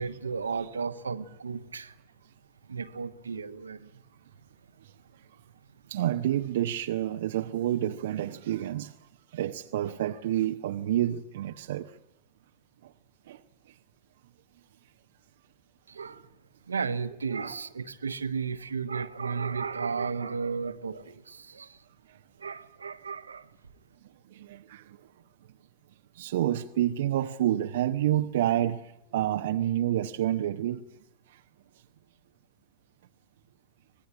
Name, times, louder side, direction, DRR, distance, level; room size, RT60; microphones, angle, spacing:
voice 1, 0.0-1.9 2.7-3.9 15.9-16.2 16.7-21.8 22.4-23.5, right 5 dB, 75° right, 1.3 m, -34 dB
voice 2, 5.9-8.9 9.3-11.9 13.3-13.4 17.4-17.6 24.4-24.8 26.2-28.8 29.1-30.8, right 12 dB, 55° right, 0.9 m, -28 dB
25.5 x 20.0 x 9.9 m
figure-of-eight pair, 90°, 0 cm